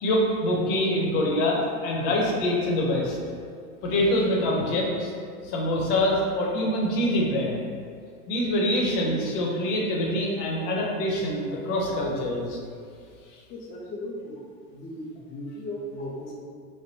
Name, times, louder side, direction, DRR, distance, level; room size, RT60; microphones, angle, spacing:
voice 1, 0.0-3.2 3.8-5.1 5.4-7.6 8.3-12.6, left 1 dB, 55° left, -2 dB, 0.9 m, -25 dB
voice 2, 13.5-14.4 14.7-16.3, left 1 dB, 20° left, -4 dB, 0.3 m, -36 dB
4.2 x 2.1 x 2.7 m, 2.2 s
hypercardioid pair, 100°, 45 cm